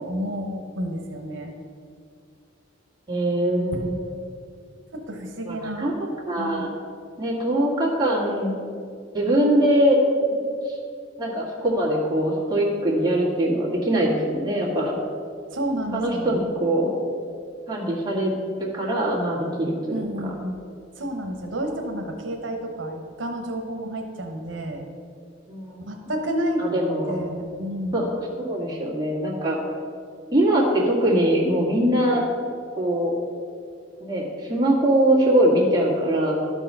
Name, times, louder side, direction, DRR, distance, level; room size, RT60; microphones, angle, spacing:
voice 1, 0.0-1.5 4.9-5.9 6.4-6.7 15.5-16.4 19.9-20.6 20.9-24.8 25.9-26.6 27.1-28.1, right 1 dB, 90° right, 3 dB, 1.0 m, -30 dB
voice 2, 3.1-3.9 5.5-6.7 7.2-8.5 9.1-10.0 10.3-10.4 11.2-14.9 15.9-17.0 17.7-18.3 18.6-20.0 25.5-25.9 26.6-27.2 27.9-28.1 28.4-29.6 30.3-32.3 32.8-33.1 34.0-36.3, right 1 dB, 20° right, -6 dB, 2.0 m, -22 dB
12.0 x 4.6 x 5.6 m, 2.3 s
head